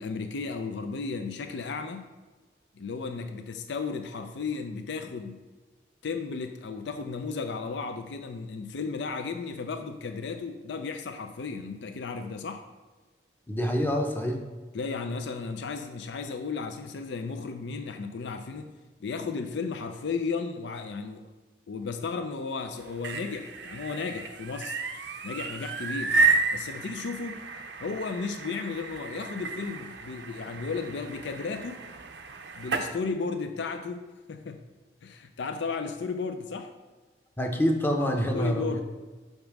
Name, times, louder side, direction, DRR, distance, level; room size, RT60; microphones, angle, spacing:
voice 1, 0.0-2.1 2.8-5.4 6.0-12.6 14.7-18.7 19.0-21.3 21.7-24.8 25.2-26.2 26.5-27.4 27.8-31.8 32.5-34.6 35.0-36.7 38.3-38.8, left 4 dB, 70° left, 7 dB, 0.4 m, -34 dB
voice 2, 13.5-14.4 37.4-38.8, equal, 10° left, 3 dB, 0.7 m, -26 dB
sound 1, 22.8-32.9, right 4 dB, 70° right, 0.6 m, -31 dB
5.3 x 5.2 x 6.0 m, 1.3 s
head